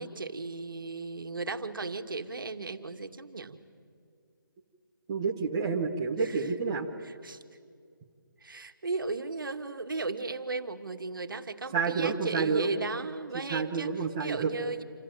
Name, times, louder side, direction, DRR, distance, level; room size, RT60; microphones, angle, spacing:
voice 1, 0.0-3.6 6.2-6.4 7.0-7.4 8.4-13.9 14.2-14.8, right 3 dB, 70° right, 7 dB, 2.1 m, -36 dB
voice 2, 5.1-6.9 11.7-12.7 13.5-14.5, right 5 dB, 15° right, -2 dB, 1.0 m, -29 dB
28.0 x 27.5 x 7.6 m, 2.2 s
hypercardioid pair, 180°, 12 cm